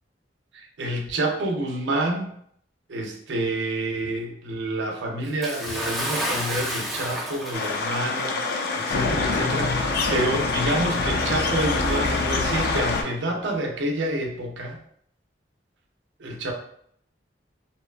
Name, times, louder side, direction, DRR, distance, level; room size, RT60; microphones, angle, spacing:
voice 1, 0.5-2.3 2.9-14.8 16.2-16.5, right 1 dB, 70° right, 2 dB, 0.5 m, -28 dB
Bathtub (filling or washing) / Splash splatter, 5.4-8.0 8.9-9.0 10.0-10.1, equal, ahead, 0.5 m, -30 dB
sound 1, 7.5-13.0, left 3 dB, 55° left, 0.3 m, -25 dB
2.7 x 2.2 x 2.3 m, 0.68 s
head